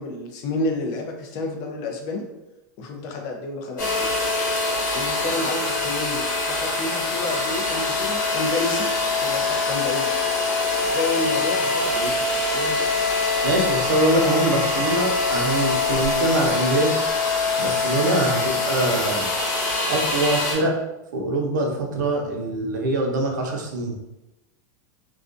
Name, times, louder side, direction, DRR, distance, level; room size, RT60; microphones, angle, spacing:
voice 1, 0.0-2.2 2.8-4.1 4.9-8.9 9.2-10.1 10.9-12.8, left 2 dB, 40° left, 2 dB, 0.4 m, -30 dB
sound 1, 3.8-20.5, left 3 dB, 85° left, 1.0 m, -24 dB
voice 2, 13.4-16.9 17.6-19.2 19.9-20.7 21.1-23.9, right 1 dB, 85° right, 1 dB, 0.6 m, -23 dB
2.4 x 2.2 x 2.5 m, 0.98 s
supercardioid pair, 155°, 10 cm